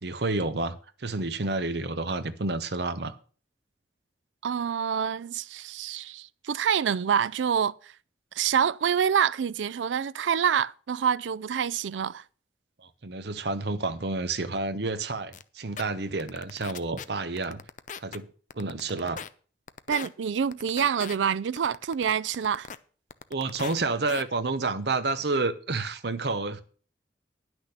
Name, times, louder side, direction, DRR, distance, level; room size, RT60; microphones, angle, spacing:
voice 1, 0.0-3.2 12.8-17.6 18.0-18.3 18.5-19.2 23.3-26.6, right 3 dB, 65° right, 0.9 m, -30 dB
voice 2, 4.4-7.9 8.3-12.2 19.9-22.7, right 7 dB, 90° right, 0.4 m, -27 dB
sound 1, 15.3-15.4 15.8-15.9 16.2-17.0 17.4-18.2 18.5-19.3 19.7-20.1 20.5-21.2 21.6-22.8 23.1-23.8 24.1-24.2, left 7 dB, 45° left, 0.5 m, -39 dB
10.5 x 6.2 x 6.7 m
head